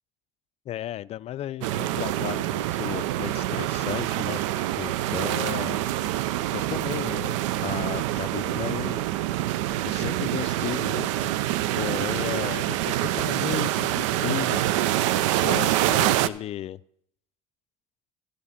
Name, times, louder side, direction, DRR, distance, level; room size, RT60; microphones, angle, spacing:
voice 1, 0.7-4.4 4.8-5.8 6.5-9.1 9.8-11.3 11.8-14.6 14.9-16.8, left 12 dB, 40° left, 18 dB, 0.4 m, -34 dB
sound 1, 1.6-16.3, right 14 dB, 80° right, 0.4 m, -26 dB
13.5 x 5.1 x 5.6 m, 0.71 s
hypercardioid pair, 70°, 16 cm